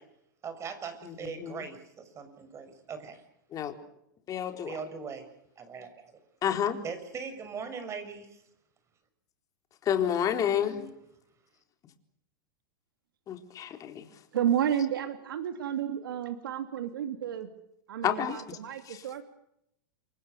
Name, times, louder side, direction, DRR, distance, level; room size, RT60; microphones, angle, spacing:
voice 1, 0.4-3.2 4.7-5.3 5.6-6.2 6.8-8.4 10.1-10.9, right 5 dB, 25° right, 9 dB, 6.5 m, -41 dB
voice 2, 1.0-1.6 3.5-3.7 4.3-4.7 6.4-6.8 9.9-10.8 13.3-14.1 18.0-18.6 18.9-19.0, left 9 dB, 30° left, 5 dB, 4.0 m, -30 dB
voice 3, 14.3-17.5 17.9-19.2, right 9 dB, 80° right, 7 dB, 2.6 m, -31 dB
29.0 x 24.5 x 6.8 m, 0.79 s
hypercardioid pair, 120°, 11 cm